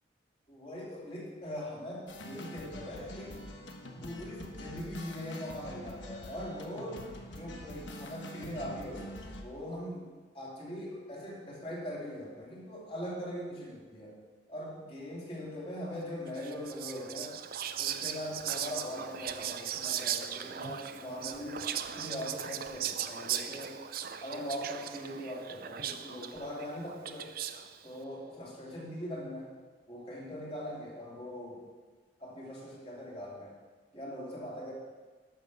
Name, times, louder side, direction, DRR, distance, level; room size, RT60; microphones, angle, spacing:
voice 1, 0.5-3.5 3.9-10.1 10.3-14.2 14.5-17.3 17.8-21.7 21.9-23.8 24.2-27.3 27.8-29.5 29.9-31.6 32.2-33.5 33.9-34.7, equal, 30° left, -4 dB, 3.0 m, -41 dB
sound 1, 2.1-9.4, equal, 80° left, 1.2 m, -45 dB
Whispering, 16.4-27.8, right 9 dB, 55° right, 0.5 m, -38 dB
11.5 x 6.6 x 6.7 m, 1.4 s
head